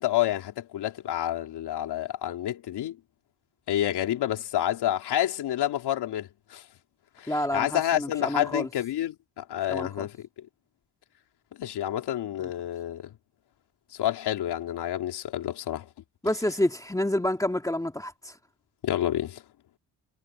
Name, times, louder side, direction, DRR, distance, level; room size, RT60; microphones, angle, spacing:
voice 1, 0.0-3.0 3.7-6.6 7.2-10.3 11.6-13.1 13.9-15.9 18.8-19.4, left 12 dB, 80° left, 3.5 m, -29 dB
voice 2, 7.3-8.7 9.7-10.1 16.2-18.4, left 1 dB, 10° left, 2.1 m, -28 dB
cardioid pair, 100°, 39 cm